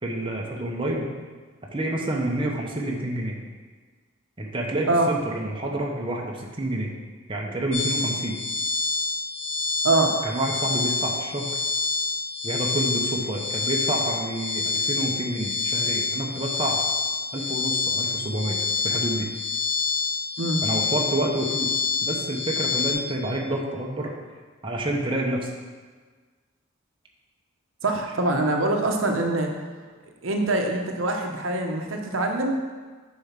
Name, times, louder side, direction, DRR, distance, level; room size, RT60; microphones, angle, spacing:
voice 1, 0.0-1.1 1.7-3.4 4.4-6.9 7.3-8.4 10.2-11.5 12.4-16.8 17.3-19.3 20.6-24.1 24.6-25.5, right 1 dB, 25° right, -2 dB, 0.9 m, -28 dB
sound 1, 7.7-22.9, left 4 dB, 60° left, 2.5 m, -27 dB
voice 2, 27.8-29.5 30.2-32.6, right 2 dB, 70° right, 2 dB, 0.9 m, -24 dB
7.0 x 4.9 x 5.8 m, 1.4 s
head